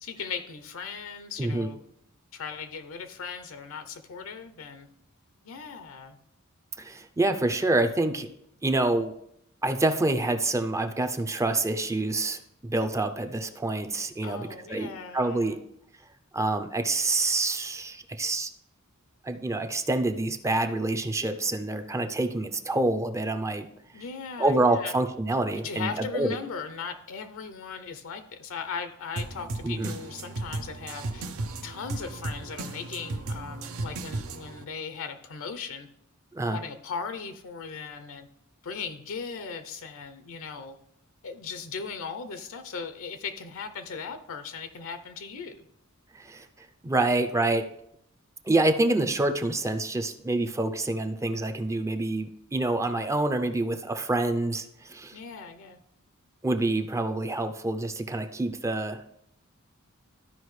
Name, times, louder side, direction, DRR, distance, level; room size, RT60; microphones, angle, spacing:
voice 1, 0.0-1.8 2.3-4.9 5.4-6.2 14.2-15.6 23.9-24.9 25.6-31.3 31.6-35.9 36.4-38.3 38.6-40.8 41.2-45.7 55.1-55.8, left 5 dB, 65° left, 9 dB, 0.6 m, -38 dB
voice 2, 6.8-8.3 8.6-9.1 9.6-15.6 16.3-18.5 19.2-23.7 24.4-26.4 29.6-29.9 36.3-36.6 46.1-46.5 46.8-47.6 48.4-55.2 56.4-59.0, right 2 dB, 15° right, 8 dB, 0.5 m, -27 dB
sound 1, 29.2-34.6, right 2 dB, 75° right, 0.7 m, -35 dB
13.5 x 5.0 x 3.2 m, 0.75 s
head